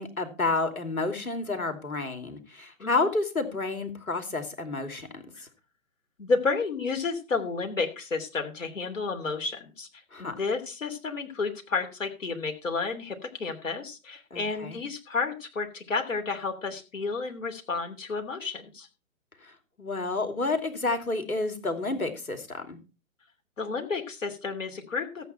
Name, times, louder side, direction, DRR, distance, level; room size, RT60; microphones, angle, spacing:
voice 1, 0.0-5.2 10.1-10.4 14.3-14.8 19.4-22.8, left 3 dB, 75° left, 7 dB, 3.0 m, -30 dB
voice 2, 6.2-18.9 23.6-25.3, left 4 dB, 60° left, 5 dB, 3.0 m, -31 dB
14.0 x 8.5 x 4.4 m, 0.32 s
figure-of-eight pair, 135°, 43 cm